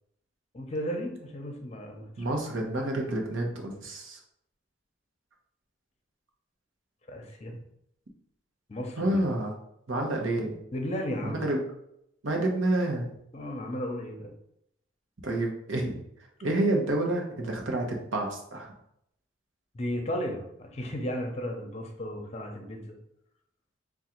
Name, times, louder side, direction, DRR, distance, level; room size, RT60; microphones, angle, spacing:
voice 1, 0.5-2.1 7.1-7.5 8.7-9.2 10.7-11.4 13.3-14.3 19.7-22.9, equal, 35° left, 3 dB, 0.7 m, -34 dB
voice 2, 2.2-4.2 9.0-9.6 9.9-10.6 11.2-11.6 12.2-13.1 15.2-16.0 16.4-18.7, right 1 dB, 85° right, 1 dB, 0.9 m, -29 dB
3.7 x 2.4 x 4.4 m, 0.76 s
head